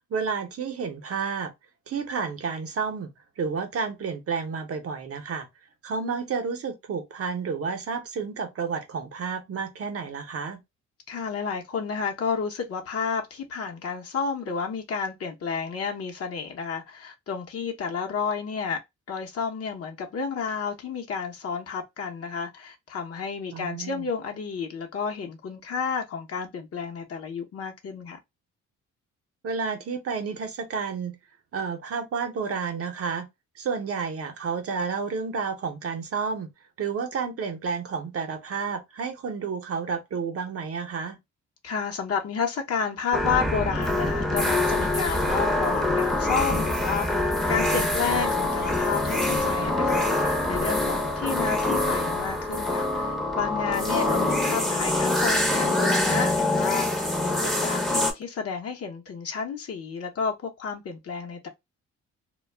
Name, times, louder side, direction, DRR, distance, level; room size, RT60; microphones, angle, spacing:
voice 1, 0.1-1.5 1.9-3.1 3.4-5.5 5.8-10.6 23.5-24.1 29.4-31.1 31.5-33.3 33.6-36.5 36.8-41.2 54.0-54.2, right 5 dB, 50° right, 0.7 m, -31 dB
voice 2, 11.1-18.8 19.1-28.2 41.6-61.5, left 5 dB, 50° left, 0.8 m, -31 dB
sound 1, 43.1-58.1, left 2 dB, ahead, 0.7 m, -25 dB
2.2 x 2.0 x 3.3 m
cardioid pair, 90°, 30 cm